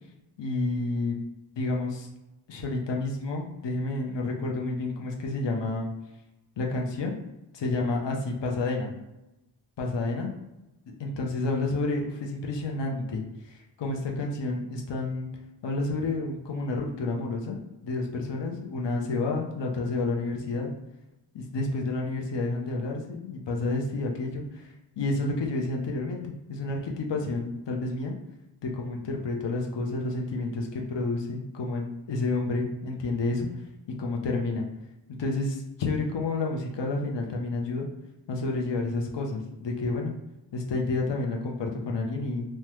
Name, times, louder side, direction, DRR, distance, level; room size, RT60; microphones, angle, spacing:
voice 1, 0.4-1.2 1.6-2.1 2.5-5.9 6.6-7.2 7.5-8.9 9.8-10.3 11.0-15.3 15.6-20.7 21.3-24.6 25.0-26.2 26.5-28.1 28.6-33.5 34.0-34.6 35.2-37.9 38.3-40.1 40.5-42.5, left 2 dB, 70° left, 0 dB, 0.7 m, -30 dB
3.4 x 2.1 x 3.0 m, 0.97 s
wide cardioid pair, 80°, 45 cm